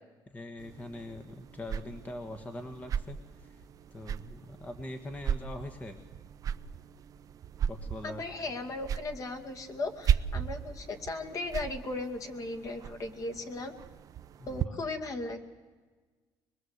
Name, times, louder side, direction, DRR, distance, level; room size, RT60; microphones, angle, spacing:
voice 1, 0.3-3.6 3.9-6.0 7.7-8.2 14.7-14.8, left 1 dB, 20° left, 7 dB, 1.4 m, -42 dB
sound 1, 0.6-14.7, right 8 dB, 45° right, 0.7 m, -36 dB
voice 2, 8.0-13.7 14.5-15.4, left 3 dB, 40° left, 6 dB, 2.3 m, -37 dB
23.5 x 21.5 x 8.1 m, 1.4 s
cardioid pair, 130°, 8 cm